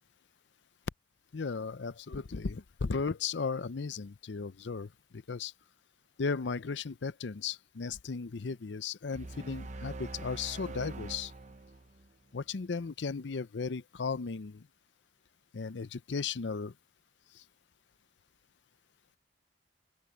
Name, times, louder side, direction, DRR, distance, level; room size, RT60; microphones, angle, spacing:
voice 1, 1.3-5.5 6.2-11.3 12.3-14.7 15.5-16.7 17.3-17.4, left 5 dB, 70° left, 0.6 m, -36 dB
sound 1, 9.1-12.5, right 2 dB, 40° right, 0.8 m, -44 dB
open air
head